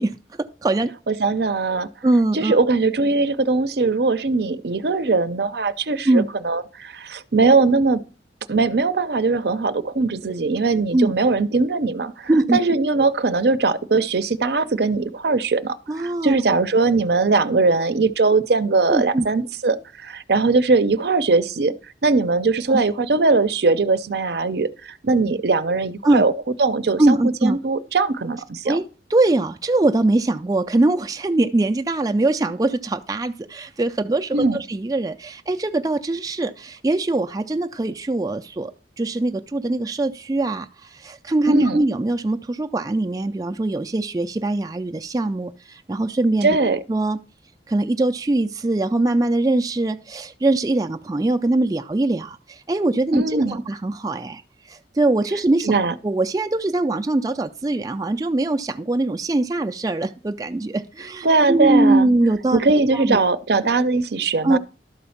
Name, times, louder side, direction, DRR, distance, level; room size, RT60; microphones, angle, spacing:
voice 1, 0.0-0.9 2.0-2.6 6.1-6.3 10.9-11.1 12.3-12.6 15.9-16.4 18.9-19.3 22.7-22.8 26.0-26.2 27.0-27.6 28.6-38.7 39.0-46.6 46.9-47.2 47.7-55.7 56.0-62.6 62.9-63.2 64.4-64.6, right 2 dB, 20° right, 0.4 m, -22 dB
voice 2, 1.1-1.9 2.3-8.0 8.5-21.7 22.0-26.3 26.6-28.8 34.3-34.6 41.5-41.8 46.4-46.8 53.1-53.6 55.7-55.9 61.2-62.1 62.5-64.6, right 3 dB, 60° right, 0.6 m, -20 dB
12.0 x 4.3 x 7.1 m
head